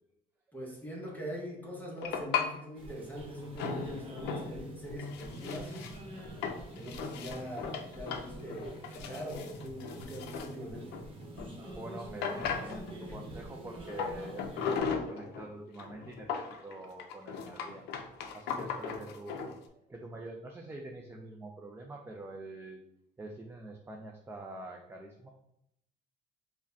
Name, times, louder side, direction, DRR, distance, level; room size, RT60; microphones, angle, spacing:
voice 1, 0.5-5.8 6.7-11.0 13.1-13.2, equal, 10° left, -3 dB, 0.9 m, -42 dB
sound 1, 2.0-2.5 3.6-4.6 4.8-11.5 11.8-11.9 12.2-13.1 13.9-15.5 15.8-19.5, left 6 dB, 80° left, 0.5 m, -37 dB
sound 2, 2.8-14.8, right 1 dB, 30° right, 1.0 m, -46 dB
voice 2, 11.7-17.9 18.3-19.5 19.9-22.8 23.2-25.3, right 2 dB, 15° right, 1 dB, 0.4 m, -45 dB
4.8 x 2.1 x 2.7 m, 0.78 s
cardioid pair, 110°, 17 cm